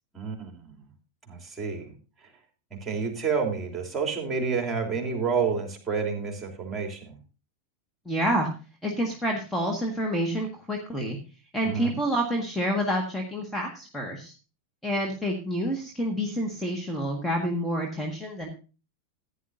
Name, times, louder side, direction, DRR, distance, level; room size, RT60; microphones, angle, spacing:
voice 1, 0.1-0.9 1.3-1.9 2.8-7.1 11.6-11.9, right 5 dB, 15° right, 2 dB, 3.2 m, -29 dB
voice 2, 8.1-8.5 8.8-11.2 11.5-14.3 14.8-18.5, equal, 5° left, 0 dB, 1.7 m, -28 dB
15.5 x 10.0 x 2.6 m, 0.33 s
figure-of-eight pair, 90°, 0 cm